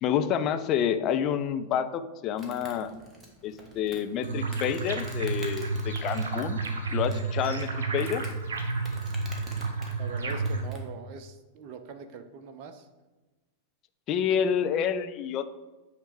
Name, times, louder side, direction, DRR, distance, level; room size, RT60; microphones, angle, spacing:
voice 1, 0.0-2.9 3.4-6.6 6.9-8.2 14.1-15.4, left 8 dB, 35° left, 10 dB, 0.5 m, -28 dB
Insect, 2.4-10.9, right 1 dB, 15° right, 1.4 m, -48 dB
sound 1, 4.2-10.6, right 3 dB, 65° right, 0.9 m, -31 dB
voice 2, 10.0-12.9, right 5 dB, 45° right, 8 dB, 0.6 m, -42 dB
8.9 x 3.3 x 4.9 m, 1.1 s
figure-of-eight pair, 90°, 0 cm